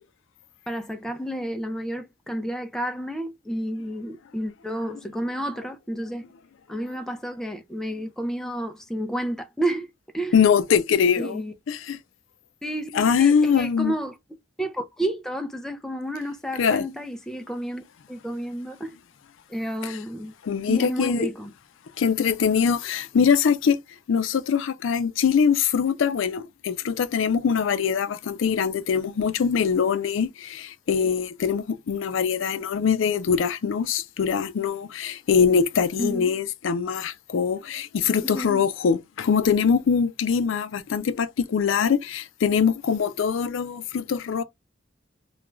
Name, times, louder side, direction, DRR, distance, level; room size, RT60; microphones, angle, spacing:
voice 1, 0.7-6.2 6.7-9.9 10.1-10.3 11.2-11.5 12.6-14.2 14.6-19.0 19.5-20.3 20.7-21.5 36.0-36.3 38.2-38.7 40.9-41.2, right 1 dB, 5° left, 0.3 m, -31 dB
voice 2, 10.3-12.0 12.9-14.0 16.6-16.9 19.8-20.0 20.4-21.3 22.0-23.8 24.1-44.4, left 6 dB, 85° left, 0.4 m, -23 dB
2.3 x 2.2 x 3.0 m
head